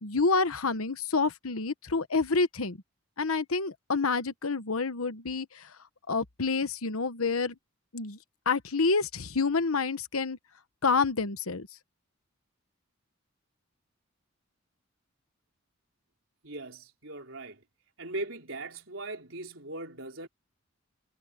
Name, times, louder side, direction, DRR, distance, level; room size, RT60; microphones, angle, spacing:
voice 1, 0.0-2.8 3.2-5.7 6.1-7.5 7.9-8.2 8.4-10.4 10.8-11.7, left 4 dB, 90° left, 1.2 m, -28 dB
voice 2, 16.4-17.6 18.0-20.3, right 2 dB, 65° right, 4.5 m, -39 dB
head